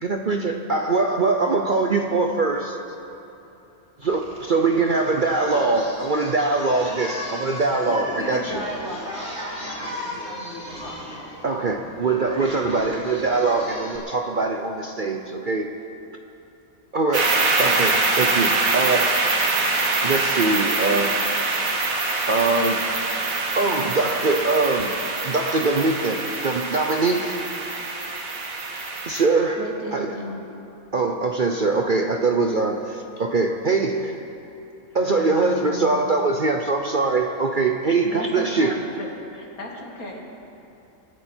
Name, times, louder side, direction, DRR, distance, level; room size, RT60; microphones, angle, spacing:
voice 1, 0.0-2.8 4.0-8.6 11.4-15.7 16.9-19.2 20.0-21.2 22.3-22.8 23.5-24.9 25.2-27.4 29.1-30.1 30.9-34.1 34.9-38.7, right 3 dB, 45° right, 3 dB, 0.7 m, -22 dB
Singing, 4.0-14.0, left 1 dB, 5° left, 4.4 m, -36 dB
voice 2, 7.8-11.3 11.8-11.9, equal, 50° left, -4 dB, 3.3 m, -35 dB
sound 1, 17.1-29.2, right 3 dB, 75° right, 1.9 m, -24 dB
voice 3, 29.6-30.4 35.1-36.0 37.8-39.1 39.3-40.2, left 1 dB, 85° left, -1 dB, 2.4 m, -34 dB
25.0 x 11.0 x 4.5 m, 3.0 s
omnidirectional pair, 1.5 m